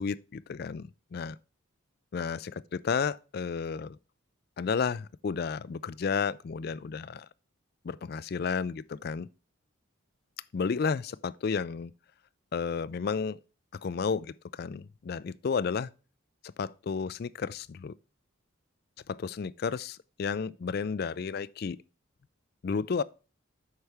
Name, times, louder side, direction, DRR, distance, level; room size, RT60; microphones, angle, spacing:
voice 1, 0.0-1.4 2.1-2.5 2.8-4.0 4.6-7.3 7.8-9.3 10.5-11.9 12.5-13.4 13.8-15.9 16.6-17.9 19.1-21.8 22.6-23.0, left 5 dB, 45° left, 0.3 m, -32 dB
8.0 x 5.6 x 3.4 m
head